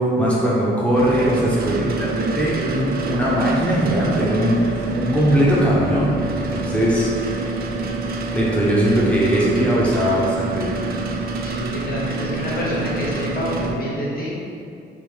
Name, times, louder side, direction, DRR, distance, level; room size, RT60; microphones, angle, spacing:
voice 1, 0.0-7.1 8.3-10.8, equal, 5° left, -6 dB, 0.9 m, -20 dB
sound 1, 0.9-13.7, right 3 dB, 50° right, 0.4 m, -27 dB
voice 2, 11.4-14.5, left 1 dB, 50° left, -5 dB, 0.9 m, -27 dB
3.2 x 3.1 x 3.5 m, 2.4 s
cardioid pair, 90°, 20 cm